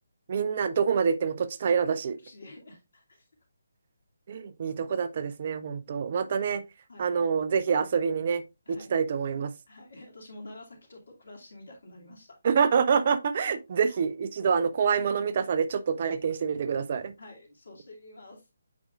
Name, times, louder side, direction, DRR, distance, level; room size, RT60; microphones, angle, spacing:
voice 1, 0.3-2.2 4.3-6.6 7.0-8.4 8.7-9.5 12.4-17.1, right 6 dB, 40° right, 0.5 m, -26 dB
voice 2, 2.1-3.3 5.7-5.8 6.3-6.5 6.9-7.1 8.7-9.0 9.7-12.4 13.4-13.5 13.9-14.0 17.2-18.5, left 2 dB, 60° left, 2.4 m, -49 dB
8.3 x 4.9 x 2.4 m
figure-of-eight pair, 145°, 0 cm